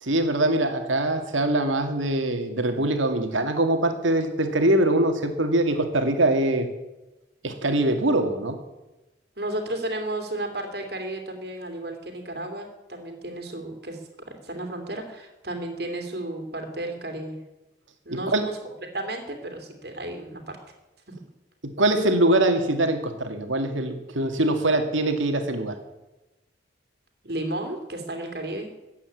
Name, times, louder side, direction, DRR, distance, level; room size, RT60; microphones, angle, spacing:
voice 1, 0.0-6.7 7.4-8.6 18.1-18.5 21.6-25.8, right 1 dB, 85° right, 6 dB, 2.2 m, -23 dB
voice 2, 9.4-14.0 14.3-17.4 18.0-20.6 27.2-28.7, right 1 dB, 55° right, 4 dB, 2.8 m, -33 dB
14.5 x 8.4 x 9.6 m, 1.0 s
head